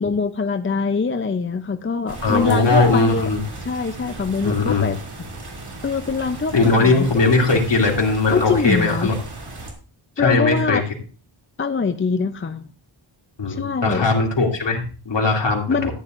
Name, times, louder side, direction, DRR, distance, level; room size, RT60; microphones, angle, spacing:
voice 1, 0.0-3.3 3.7-5.0 5.8-7.1 8.3-9.1 10.2-10.8 11.6-12.7 13.5-14.0 15.7-15.9, left 5 dB, 25° left, 8 dB, 0.6 m, -23 dB
sound 1, 2.1-9.7, right 2 dB, 55° right, 3.1 m, -36 dB
voice 2, 2.2-3.4 4.4-4.9 6.5-9.1 10.2-10.8 13.4-15.9, left 3 dB, 65° left, 0 dB, 2.9 m, -19 dB
14.0 x 9.8 x 2.6 m, 0.37 s
wide cardioid pair, 95°, 47 cm